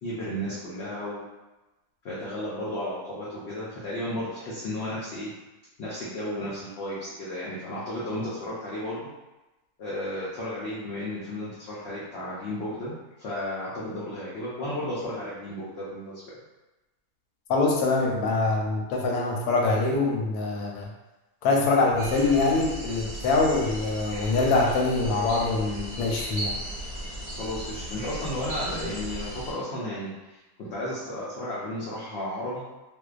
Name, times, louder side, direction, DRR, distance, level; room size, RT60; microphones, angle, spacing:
voice 1, 0.0-1.2 2.0-5.3 5.8-9.0 9.8-16.4 27.3-32.7, left 1 dB, 65° left, -8 dB, 0.7 m, -33 dB
voice 2, 17.5-20.9 21.4-26.5, left 3 dB, 90° left, 0 dB, 1.1 m, -24 dB
sound 1, 22.0-29.5, right 1 dB, 50° right, 0.8 m, -36 dB
2.5 x 2.1 x 2.3 m, 1.1 s
omnidirectional pair, 1.5 m